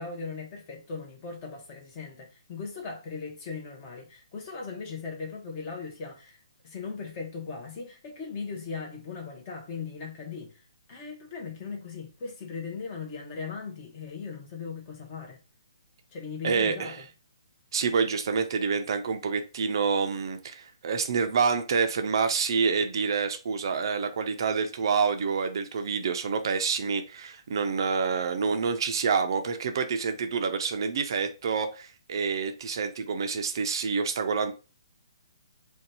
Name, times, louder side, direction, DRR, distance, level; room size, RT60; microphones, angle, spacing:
voice 1, 0.0-10.6 10.9-15.4 16.1-17.0, left 5 dB, 20° left, 0.7 m, -38 dB
voice 2, 16.4-17.0 17.7-34.5, right 5 dB, 45° right, 0.4 m, -27 dB
2.6 x 2.2 x 4.0 m
hypercardioid pair, 170°, 3 cm